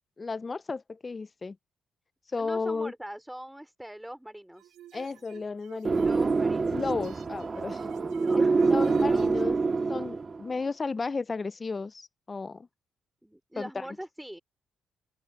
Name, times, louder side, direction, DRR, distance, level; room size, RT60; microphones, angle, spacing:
voice 1, 0.2-1.6 2.3-2.9 4.9-6.0 6.7-7.9 8.4-9.6 9.9-12.7 13.6-13.8, left 4 dB, 25° left, 0.4 m, -33 dB
voice 2, 2.4-4.7 6.0-6.8 8.2-9.5 13.2-14.4, right 1 dB, 5° right, 3.1 m, -42 dB
sound 1, 4.6-9.5, right 12 dB, 90° right, 2.6 m, -51 dB
sound 2, 5.8-10.5, right 4 dB, 30° right, 0.6 m, -26 dB
open air
cardioid pair, 115°, 0 cm